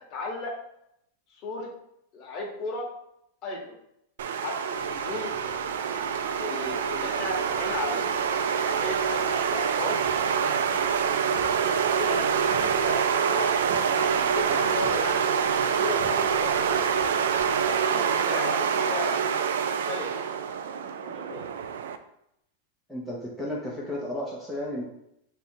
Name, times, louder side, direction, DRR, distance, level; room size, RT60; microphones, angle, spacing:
voice 1, 0.1-0.5 1.4-1.7 2.1-2.9 3.4-3.7 4.4-5.3 6.4-8.0 8.6-10.0 11.9-15.2 15.6-16.8 17.9-19.4 19.9-20.1 21.0-21.5, left 2 dB, 30° left, -1 dB, 1.0 m, -35 dB
sound 1, 4.2-22.0, right 7 dB, 85° right, 0.3 m, -26 dB
sound 2, 4.7-17.8, left 4 dB, 75° left, 0.9 m, -49 dB
sound 3, 6.5-20.0 20.2-20.4, right 3 dB, 55° right, 1.0 m, -50 dB
voice 2, 22.9-24.8, left 1 dB, ahead, -4 dB, 0.6 m, -33 dB
3.7 x 2.7 x 4.3 m, 0.77 s
supercardioid pair, 165°, 0 cm